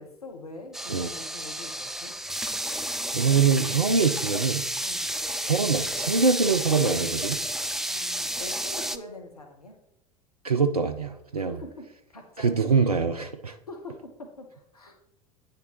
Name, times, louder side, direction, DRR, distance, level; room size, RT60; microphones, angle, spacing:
voice 1, 0.0-2.1 4.8-5.1 7.9-9.8 11.5-12.5 13.7-14.9, left 2 dB, 80° left, 3 dB, 1.0 m, -44 dB
sound 1, 0.7-9.0, right 1 dB, ahead, 0.4 m, -31 dB
voice 2, 3.1-4.6 5.4-7.4 10.4-11.6 12.4-13.6, right 5 dB, 85° right, 7 dB, 0.4 m, -24 dB
9.3 x 6.5 x 3.0 m, 0.82 s
figure-of-eight pair, 75°, 19 cm